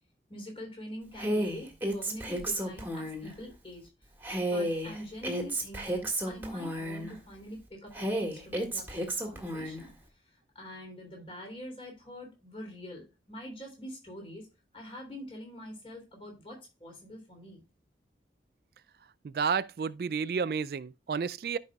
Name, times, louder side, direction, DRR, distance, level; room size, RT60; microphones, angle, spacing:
voice 1, 0.3-3.9 4.4-9.9 10.3-14.5 14.7-17.6, equal, 30° left, 3.3 m, -45 dB
Female speech woman speaking, 1.2-3.3 4.2-7.1 7.9-9.8, right 1 dB, 10° right, 1.8 m, -32 dB
voice 2, 19.2-21.6, right 6 dB, 55° right, 0.3 m, -31 dB
13.0 x 5.4 x 2.3 m
head